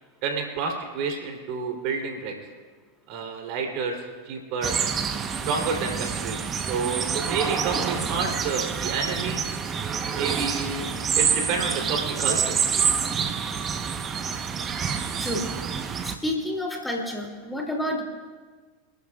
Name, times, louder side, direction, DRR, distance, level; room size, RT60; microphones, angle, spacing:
voice 1, 0.2-2.3 3.1-4.0 4.3-4.7 5.5-6.4 6.7-9.4 10.1-10.9 11.2-12.6, right 5 dB, 55° right, 2 dB, 3.5 m, -29 dB
sound 1, 4.6-16.2, right 7 dB, 30° right, 1.1 m, -27 dB
voice 2, 16.0-18.0, left 1 dB, 5° left, 0 dB, 2.8 m, -29 dB
27.5 x 13.0 x 2.5 m, 1.4 s
hypercardioid pair, 90°, 0 cm